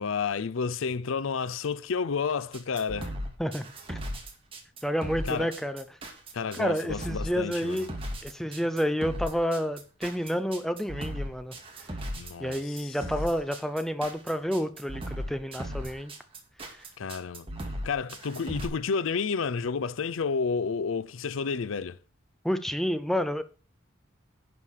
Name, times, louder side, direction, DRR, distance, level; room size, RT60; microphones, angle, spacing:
voice 1, 0.0-3.1 5.3-5.5 6.3-7.8 12.1-12.9 17.0-17.5 17.8-22.0, left 5 dB, 80° left, 0.5 m, -30 dB
sound 1, 2.5-18.7, equal, 25° right, 2.2 m, -37 dB
voice 2, 3.4-4.0 4.8-5.8 6.5-7.9 8.2-11.6 12.4-16.1 16.7-16.9 22.4-23.4, equal, ahead, 0.6 m, -29 dB
11.0 x 5.1 x 6.6 m
head